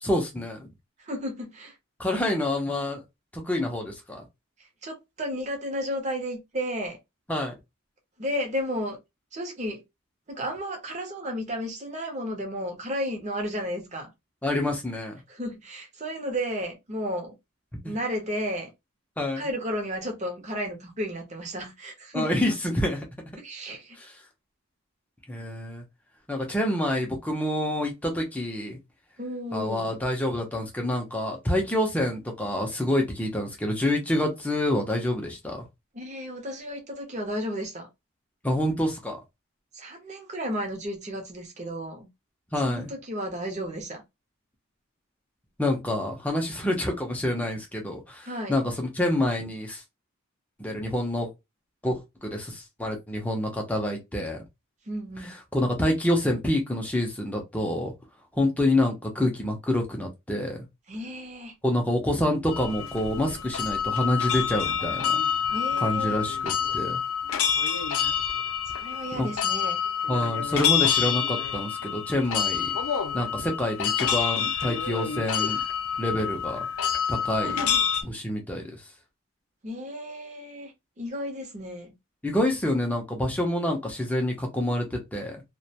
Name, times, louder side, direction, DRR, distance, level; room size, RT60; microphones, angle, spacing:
voice 1, 0.0-0.7 2.0-3.0 3.3-4.2 7.3-7.5 14.4-15.2 17.8-17.9 19.2-19.5 22.1-23.1 24.0-24.2 25.3-25.8 26.3-28.8 29.5-35.6 38.4-39.2 42.5-42.9 45.6-49.8 50.6-51.3 51.8-54.4 55.2-57.9 58.3-60.7 61.6-65.2 65.8-67.0 69.1-69.3 70.1-72.7 73.1-75.6 76.0-76.7 77.1-77.7 78.0-78.9 82.2-85.4, left 1 dB, 5° left, 0.5 m, -27 dB
voice 2, 1.0-1.8 4.8-7.0 8.2-9.0 9.3-9.8 10.3-14.1 15.3-17.3 17.8-18.7 19.4-22.4 23.4-24.0 29.2-30.0 35.9-37.9 39.7-42.1 42.6-44.0 48.2-48.5 54.9-55.3 60.9-61.5 65.5-66.2 68.7-69.8 77.4-77.8 79.6-81.9, equal, 35° right, 0.7 m, -33 dB
Ancient Pana Lhakhang Prayer Wheels-Bhutan, 62.5-78.0, left 8 dB, 75° left, 0.4 m, -27 dB
2.3 x 2.1 x 2.7 m
head